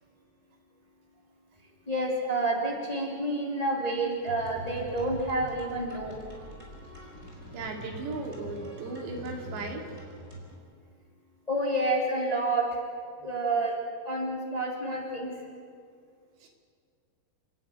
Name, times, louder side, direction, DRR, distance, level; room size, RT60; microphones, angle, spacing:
voice 1, 1.9-6.2 11.5-12.8 13.2-13.7 14.0-15.3, right 2 dB, 10° left, -1 dB, 2.6 m, -29 dB
sound 1, 4.3-10.6, right 1 dB, 15° right, 4.1 m, -43 dB
voice 2, 7.5-9.9 16.4-16.5, right 3 dB, 90° right, 2 dB, 4.7 m, -36 dB
29.5 x 11.0 x 9.2 m, 2.1 s
omnidirectional pair, 4.8 m